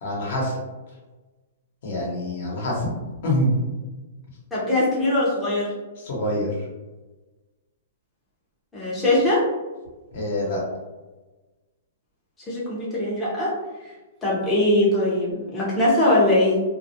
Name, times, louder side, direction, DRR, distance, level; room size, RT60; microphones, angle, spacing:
voice 1, 0.0-0.6 1.8-2.9 3.2-3.6 6.0-6.7 10.1-10.6, equal, 55° left, -3 dB, 0.9 m, -25 dB
voice 2, 4.5-5.7 8.7-9.4 12.5-13.5 14.2-16.6, left 1 dB, 10° left, -8 dB, 0.6 m, -21 dB
2.3 x 2.0 x 2.7 m, 1.2 s
hypercardioid pair, 155°, 0 cm